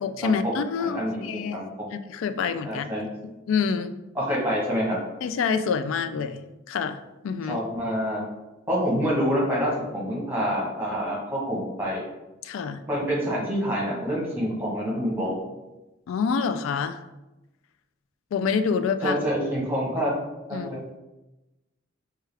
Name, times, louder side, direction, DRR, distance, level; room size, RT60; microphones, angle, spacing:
voice 1, 0.0-1.6 1.9-2.9 3.2-3.9 5.2-7.0 7.2-7.6 12.4-12.8 16.1-17.0 18.3-19.2 20.5-20.7, left 6 dB, 75° left, 12 dB, 0.3 m, -27 dB
voice 2, 0.8-1.7 2.6-3.0 4.1-5.0 7.5-8.2 8.7-12.0 12.9-15.4 19.0-20.1 20.5-20.8, equal, 10° right, -4 dB, 1.0 m, -27 dB
4.6 x 2.3 x 3.3 m, 1.0 s
head